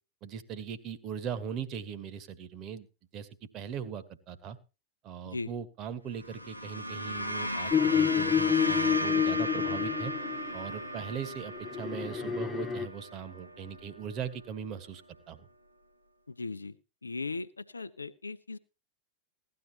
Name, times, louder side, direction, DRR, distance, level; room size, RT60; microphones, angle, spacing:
voice 1, 0.2-2.9 3.1-3.3 3.5-4.6 5.0-10.1 10.5-15.0 15.3-15.5, right 7 dB, 35° right, 11 dB, 1.6 m, -39 dB
sound 1, 6.1-14.6, equal, 90° right, 1.2 m, -36 dB
sound 2, 7.7-10.6 11.6-12.9, left 8 dB, 15° left, 0.6 m, -28 dB
voice 2, 16.3-16.7 17.0-18.6, left 3 dB, 80° left, 11 dB, 0.6 m, -38 dB
17.0 x 12.0 x 3.0 m, 0.30 s
figure-of-eight pair, 90°, 0 cm